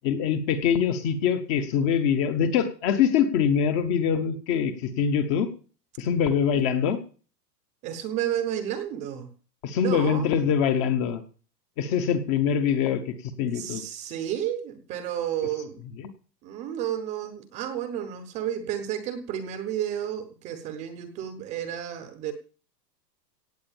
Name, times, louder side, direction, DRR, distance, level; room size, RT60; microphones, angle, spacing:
voice 1, 0.0-5.5 6.0-7.0 9.6-11.2 11.8-13.8, left 7 dB, 20° left, 10 dB, 0.8 m, -24 dB
voice 2, 7.8-9.3 9.8-10.5 13.5-15.8 16.4-22.3, right 10 dB, 15° right, 10 dB, 0.8 m, -31 dB
17.0 x 8.0 x 7.1 m, 0.39 s
supercardioid pair, 170°, 50 cm